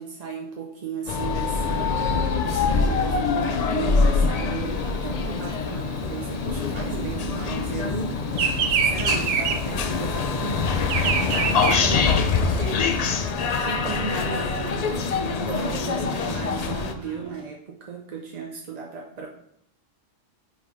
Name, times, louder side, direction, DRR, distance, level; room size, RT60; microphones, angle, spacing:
voice 1, 0.0-12.9 13.6-19.3, right 5 dB, 45° right, 0 dB, 0.6 m, -35 dB
sound 1, 1.1-16.9, left 5 dB, 80° left, 0.3 m, -25 dB
sound 2, 3.4-17.4, equal, 15° left, 1.9 m, -41 dB
Bird vocalization bird call bird song, 4.7-7.6 7.9-12.6, right 6 dB, 85° right, 1.1 m, -26 dB
5.0 x 4.0 x 4.8 m, 0.71 s
omnidirectional pair, 1.3 m